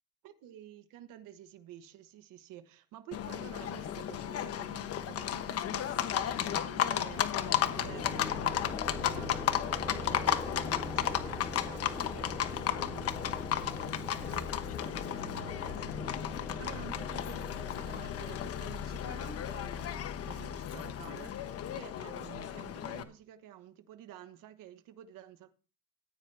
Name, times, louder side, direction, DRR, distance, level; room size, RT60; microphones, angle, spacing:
voice 1, 0.2-25.5, right 11 dB, 65° right, 1.2 m, -51 dB
Livestock farm animals working animals, 3.1-23.0, left 10 dB, 45° left, 1.1 m, -34 dB
sound 1, 7.1-20.4, left 2 dB, 10° left, 3.2 m, -43 dB
15.0 x 9.1 x 3.4 m
cardioid pair, 150°, 34 cm